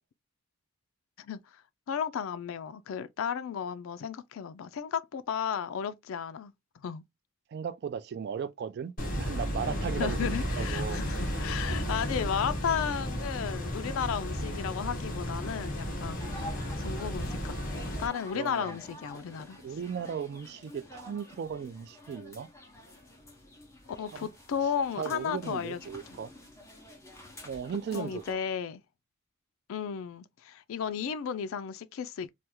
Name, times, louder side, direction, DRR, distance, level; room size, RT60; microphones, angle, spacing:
voice 1, 1.2-1.6 1.9-6.5 6.8-7.0 10.0-19.6 24.0-25.8 26.1-26.2 27.9-28.8 29.7-32.3, left 7 dB, 75° left, 0.4 m, -34 dB
voice 2, 7.5-11.0 18.3-18.8 19.6-22.5 24.1-24.3 25.0-26.3 27.4-28.4, right 7 dB, 55° right, 0.3 m, -36 dB
sound 1, 9.0-18.1, equal, 40° left, 1.2 m, -33 dB
sound 2, 16.2-28.3, left 1 dB, 15° left, 1.1 m, -48 dB
3.3 x 2.2 x 2.9 m
head